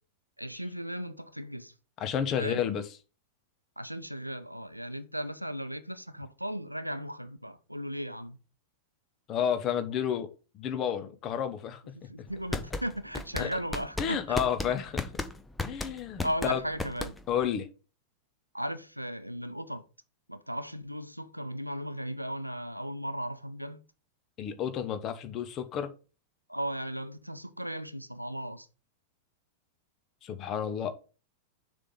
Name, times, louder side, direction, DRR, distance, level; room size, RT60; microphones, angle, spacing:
voice 1, 0.4-1.7 2.4-2.7 3.8-8.4 11.9-14.4 16.2-17.1 18.5-19.8 20.3-23.8 26.5-28.7, equal, 90° right, 0.5 m, -36 dB
voice 2, 2.0-2.8 9.3-10.3 10.5-11.8 13.4-13.5 14.0-15.1 15.6-16.6 17.3-17.7 24.4-25.9 30.2-30.9, left 8 dB, 35° left, 0.9 m, -31 dB
sound 1, 12.3-17.5, left 2 dB, 10° left, 0.7 m, -35 dB
6.8 x 3.5 x 5.2 m
figure-of-eight pair, 90°, 0 cm